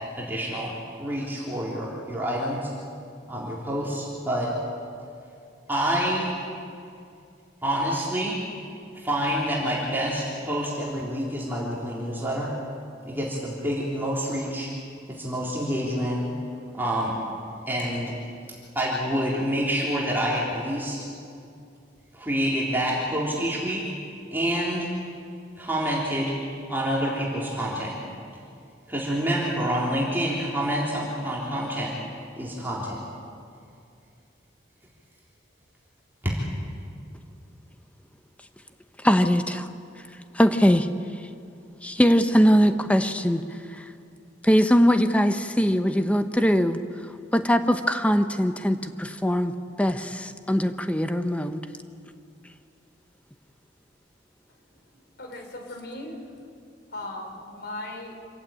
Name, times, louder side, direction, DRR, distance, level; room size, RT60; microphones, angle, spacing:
voice 1, 0.2-0.7 1.0-2.7 3.3-4.5 5.7-6.4 7.6-8.5 8.9-12.6 13.0-14.7 15.1-16.2 16.7-17.2 17.7-18.2 18.8-21.0 22.1-23.9 24.3-24.9 25.6-26.4 26.7-28.0 28.9-32.0 32.4-33.0 36.2-36.3, equal, 10° right, -5 dB, 3.4 m, -27 dB
voice 2, 39.0-39.7 40.3-40.9 41.8-43.4 43.7-43.8 44.4-46.8 47.3-49.5 49.8-51.6, equal, 5° left, 8 dB, 0.9 m, -21 dB
voice 3, 54.5-56.3 56.9-58.2, left 1 dB, 60° left, 3 dB, 4.2 m, -38 dB
26.5 x 15.0 x 9.0 m, 2.4 s
head